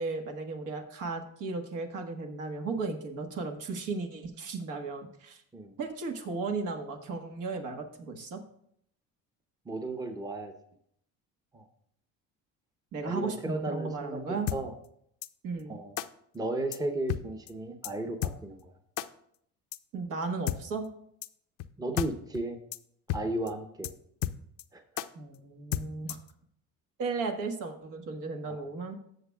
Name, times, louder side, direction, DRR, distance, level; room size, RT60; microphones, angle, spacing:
voice 1, 0.0-5.4 5.8-8.4 12.9-14.5 15.4-15.8 19.9-20.9 25.1-26.2 27.0-29.0, right 4 dB, 70° right, 4 dB, 1.6 m, -35 dB
voice 2, 9.7-10.5 11.5-11.6 13.0-14.7 15.7-15.9 16.3-18.7 21.8-22.6 23.1-23.9 24.7-24.8 28.5-28.6, right 2 dB, 10° right, 5 dB, 0.8 m, -34 dB
sound 1, 14.5-14.6 15.2-15.3 16.0-16.1 16.7-16.8 17.1-17.2 17.5-17.6 17.8-17.9 18.2-18.3 19.0-19.1 19.7-19.8 20.5-20.6 21.2-21.3 21.6-21.7 22.0-22.1 22.3-22.4 22.7-22.8 23.1-23.2 23.5-23.6 23.8-23.9 24.2-24.6 25.0-25.1 25.7-26.3, left 13 dB, 70° left, 0.6 m, -32 dB
18.0 x 6.9 x 2.4 m, 0.70 s
cardioid pair, 105°, 33 cm